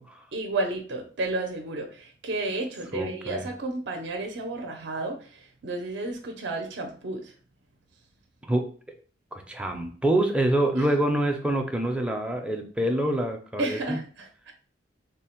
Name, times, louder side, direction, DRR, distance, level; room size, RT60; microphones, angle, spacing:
voice 1, 0.3-7.3 13.6-14.5, right 2 dB, 65° right, 3 dB, 0.5 m, -32 dB
voice 2, 2.9-3.5 8.5-8.6 9.3-14.0, right 1 dB, 5° right, 2 dB, 0.4 m, -26 dB
3.3 x 2.1 x 4.3 m, 0.43 s
head